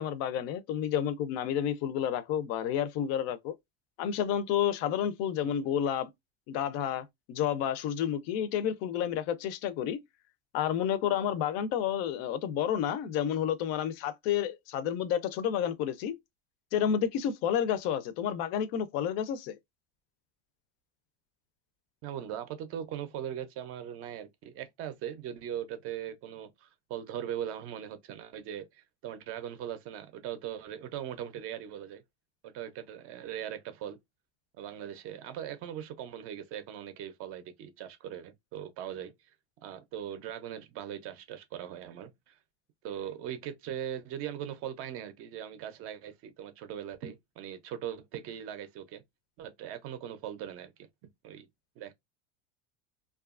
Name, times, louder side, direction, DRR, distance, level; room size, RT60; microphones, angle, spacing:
voice 1, 0.0-3.5 4.0-6.1 6.5-10.0 10.5-16.1 16.7-19.6, left 9 dB, 50° left, 0.5 m, -30 dB
voice 2, 22.0-32.0 32.4-34.0 34.6-39.3 39.6-42.4 42.8-49.0 49.4-50.7 51.2-51.5 51.8-51.9, right 10 dB, 45° right, 0.5 m, -40 dB
2.7 x 2.3 x 2.3 m
supercardioid pair, 140°, 32 cm